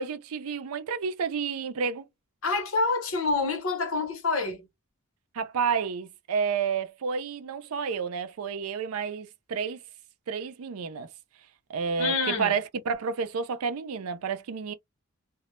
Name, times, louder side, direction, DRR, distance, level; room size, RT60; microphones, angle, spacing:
voice 1, 0.0-2.0 5.3-9.8 10.3-11.1 11.7-14.7, right 6 dB, 85° right, 0.4 m, -30 dB
voice 2, 2.4-4.7 12.0-12.6, left 3 dB, 70° left, 0.8 m, -27 dB
2.1 x 2.0 x 3.0 m
head